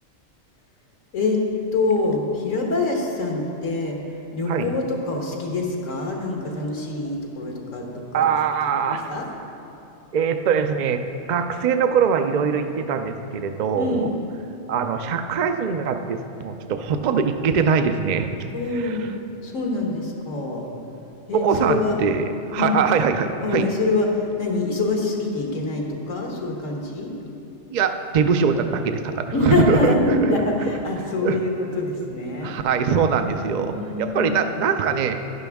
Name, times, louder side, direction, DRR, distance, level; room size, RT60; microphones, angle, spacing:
voice 1, 1.7-4.0 4.3-8.3 8.8-9.3 13.8-14.1 18.5-19.1 19.4-20.6 21.3-22.0 22.6-22.8 23.4-27.1 29.3-32.6 33.1-34.4, left 2 dB, 90° left, 1 dB, 1.7 m, -25 dB
voice 2, 8.1-9.1 10.1-11.0 11.3-14.1 14.7-18.3 18.7-19.0 21.3-23.7 27.7-30.2 31.2-31.4 32.0-32.1 32.4-35.1, right 6 dB, 60° right, 7 dB, 0.4 m, -22 dB
12.0 x 10.5 x 3.5 m, 2.8 s
omnidirectional pair, 1.3 m